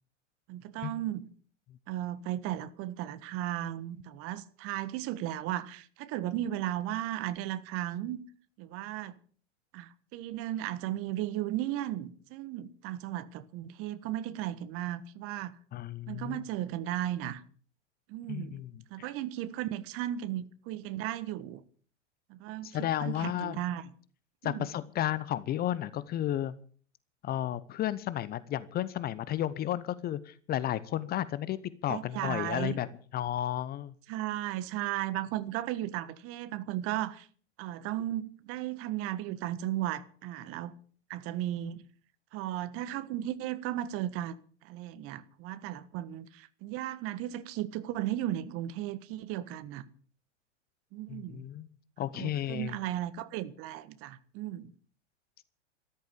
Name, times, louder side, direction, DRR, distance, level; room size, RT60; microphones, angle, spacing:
voice 1, 0.5-1.3 1.9-8.2 8.6-9.2 9.7-15.5 16.1-17.4 18.1-18.6 18.9-21.6 22.3-23.8 24.4-24.7 31.9-32.8 34.1-37.3 37.6-40.7 41.1-41.8 42.3-44.3 44.6-49.8 50.9-51.5 52.1-54.7, right 13 dB, 40° right, 1.5 m, -35 dB
voice 2, 15.7-16.4 18.3-18.7 19.0-19.1 22.6-23.6 24.4-26.6 27.2-31.6 31.8-33.9 51.1-51.7 52.0-52.8, left 12 dB, 25° left, 0.8 m, -33 dB
14.0 x 13.5 x 6.9 m
figure-of-eight pair, 100°, 37 cm